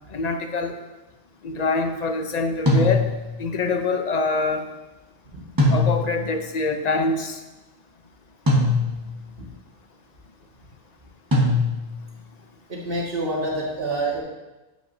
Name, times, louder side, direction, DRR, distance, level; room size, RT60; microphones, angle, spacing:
voice 1, 0.1-0.8 1.4-3.1 3.4-4.7 5.7-7.4, left 3 dB, 45° left, 5 dB, 0.6 m, -24 dB
sound 1, 2.7-3.4 5.6-6.3 8.5-9.2 11.3-12.1, left 2 dB, 15° right, 1.3 m, -21 dB
voice 2, 12.7-14.2, right 2 dB, 50° right, -3 dB, 1.9 m, -27 dB
8.8 x 7.6 x 2.7 m, 1.1 s
omnidirectional pair, 1.3 m